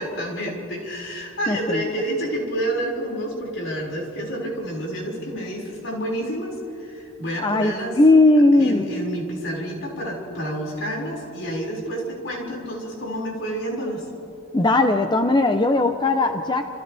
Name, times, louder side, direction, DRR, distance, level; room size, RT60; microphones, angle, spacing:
voice 1, 0.0-8.0 8.6-14.1, right 1 dB, 70° left, -2 dB, 5.6 m, -29 dB
voice 2, 1.5-1.9 7.4-8.9 14.5-16.7, left 2 dB, 20° left, 6 dB, 0.7 m, -18 dB
29.5 x 28.0 x 3.5 m, 2.8 s
head